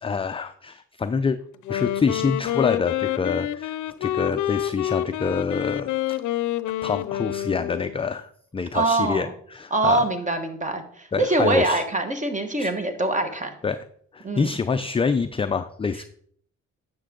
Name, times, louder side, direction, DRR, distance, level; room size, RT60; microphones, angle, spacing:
voice 1, 0.0-1.4 1.7-5.9 6.8-10.0 11.1-11.8 12.6-12.7 13.6-13.8 14.1-16.0, left 5 dB, 20° left, 9 dB, 0.4 m, -26 dB
Wind instrument woodwind instrument, 1.5-8.1, left 13 dB, 75° left, 0.6 m, -28 dB
voice 2, 8.7-9.3 9.7-13.5 14.2-14.5, right 2 dB, 25° right, 7 dB, 1.5 m, -24 dB
10.0 x 6.9 x 3.8 m, 0.62 s
cardioid pair, 90°, 30 cm